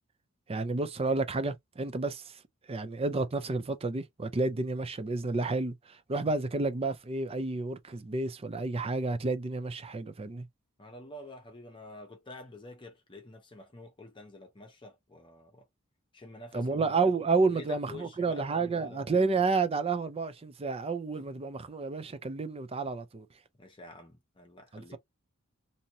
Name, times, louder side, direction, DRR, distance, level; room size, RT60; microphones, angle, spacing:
voice 1, 0.5-2.4 2.7-10.5 16.5-23.3 24.7-25.0, right 3 dB, 30° right, 0.5 m, -30 dB
voice 2, 10.8-15.7 16.1-16.7 17.4-19.1 23.6-25.0, left 1 dB, 25° left, 0.8 m, -48 dB
2.9 x 2.7 x 2.6 m
head